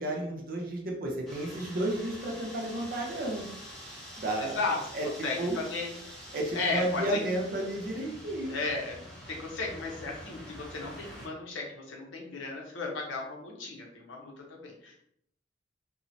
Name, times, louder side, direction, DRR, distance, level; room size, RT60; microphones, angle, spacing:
voice 1, 0.0-3.4 4.2-4.6 4.9-5.1 5.4-5.6 6.3-8.5, right 1 dB, 50° right, -1 dB, 0.6 m, -32 dB
sound 1, 1.3-11.3, equal, 5° left, 0.6 m, -46 dB
voice 2, 4.4-4.8 5.2-5.9 6.5-7.2 8.4-9.0 9.3-14.9, left 3 dB, 85° left, -1 dB, 0.8 m, -35 dB
3.0 x 2.1 x 2.6 m, 0.71 s
head